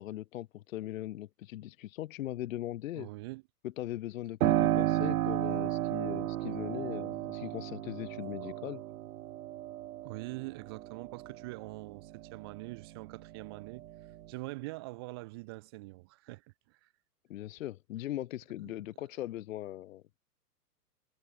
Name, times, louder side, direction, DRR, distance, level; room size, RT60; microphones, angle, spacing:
voice 1, 0.0-3.1 3.6-8.8 17.3-20.2, left 14 dB, 55° left, 0.6 m, -39 dB
voice 2, 2.9-3.4 8.4-8.6 10.0-13.9 14.3-16.9 18.6-18.7, right 23 dB, 20° right, 0.4 m, -44 dB
Piano, 4.4-12.8 13.3-14.3, right 14 dB, 65° right, 0.6 m, -33 dB
hypercardioid pair, 115°, 47 cm